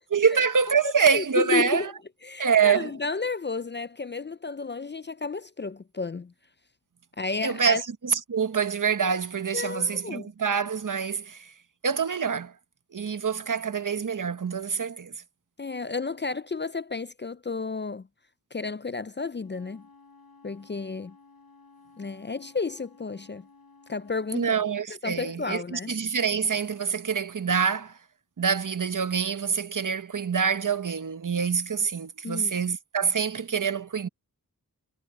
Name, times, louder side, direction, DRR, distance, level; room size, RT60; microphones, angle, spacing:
voice 1, 0.1-1.9 2.4-2.9 7.4-11.5 11.8-12.5 12.9-15.2 24.3-28.0 28.4-34.1, right 6 dB, 55° right, 0.9 m, -26 dB
voice 2, 0.8-1.9 2.2-6.3 7.2-7.8 9.5-10.3 15.6-18.1 18.5-19.9 20.4-21.2 22.0-23.5 23.9-24.6 24.9-26.0 32.2-32.5, left 4 dB, 30° left, 0.4 m, -32 dB
Wind instrument woodwind instrument, 19.3-24.4, left 4 dB, 75° left, 6.6 m, -55 dB
wide cardioid pair, 75°, 37 cm